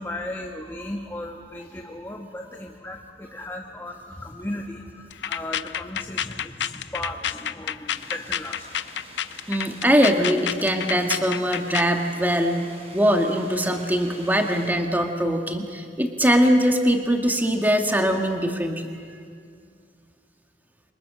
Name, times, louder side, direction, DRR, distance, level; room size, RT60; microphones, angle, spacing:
voice 1, 0.0-8.9, left 1 dB, 15° left, 2 dB, 1.3 m, -36 dB
sound 1, 5.1-12.0, left 9 dB, 70° left, 0.6 m, -30 dB
sound 2, 7.9-14.7, right 1 dB, 35° right, 5.6 m, -46 dB
voice 2, 9.5-12.7 12.9-19.2, equal, 10° right, 3 dB, 1.7 m, -22 dB
29.5 x 25.5 x 6.8 m, 2.1 s
head